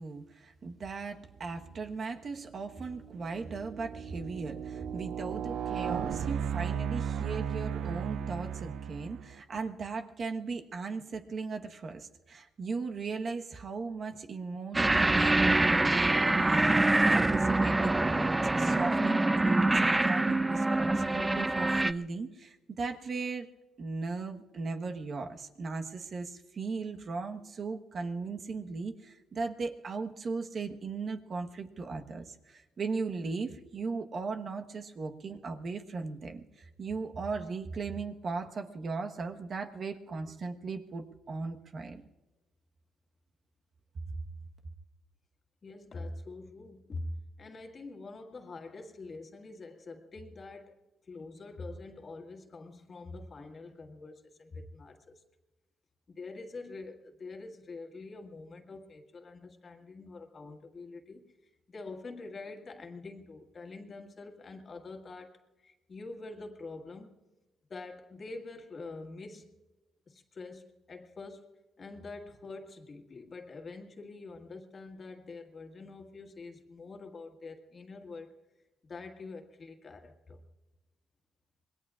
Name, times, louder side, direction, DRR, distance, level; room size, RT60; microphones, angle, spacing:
voice 1, 0.0-23.5 23.8-42.0, right 4 dB, 50° right, 4 dB, 1.2 m, -37 dB
sound 1, 1.6-2.0 2.6-9.4, right 8 dB, 70° right, 0.5 m, -36 dB
sound 2, 14.7-21.9, right 2 dB, 15° right, 0.4 m, -25 dB
voice 2, 45.6-50.8 51.1-55.1 56.1-61.3 61.7-67.2 67.7-69.5 70.1-71.5 71.8-78.4 78.8-80.4, left 3 dB, 40° left, 4 dB, 1.9 m, -45 dB
26.5 x 21.0 x 2.5 m, 1.1 s
cardioid pair, 90°, 0 cm